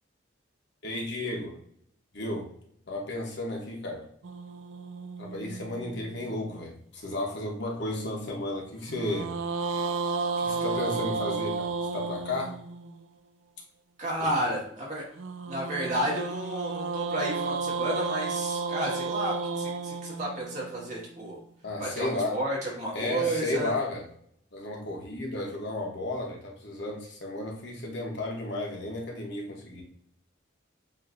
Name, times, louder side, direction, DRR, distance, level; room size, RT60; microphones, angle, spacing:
voice 1, 0.8-1.6 2.1-2.5 2.9-4.1 5.2-9.4 10.4-12.6 14.2-14.4 21.6-22.4 22.9-24.0 24.5-29.8, left 2 dB, 60° left, -1 dB, 1.0 m, -33 dB
sound 1, 4.2-6.6 8.9-13.1 15.2-21.4, right 4 dB, 80° right, 0.4 m, -33 dB
voice 2, 14.0-15.0 15.5-21.4 21.8-23.7, right 1 dB, 40° right, -4 dB, 1.6 m, -31 dB
7.4 x 2.8 x 2.5 m, 0.66 s
head